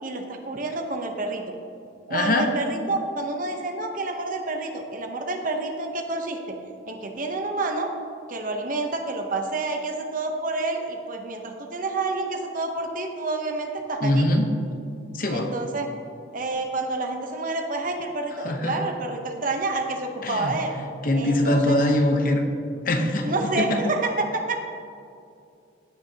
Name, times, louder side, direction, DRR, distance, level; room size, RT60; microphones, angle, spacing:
voice 1, 0.0-1.4 2.1-6.6 6.9-7.9 8.3-14.3 15.3-15.9 16.3-20.7 21.1-21.8 23.2-24.6, right 2 dB, 40° right, 4 dB, 0.8 m, -28 dB
voice 2, 2.1-2.5 14.0-14.5 15.1-15.5 18.4-18.7 20.2-20.5 21.0-22.4 22.8-23.3 23.6-23.7, left 1 dB, 45° left, 3 dB, 0.9 m, -22 dB
16.0 x 6.4 x 2.8 m, 2.5 s
head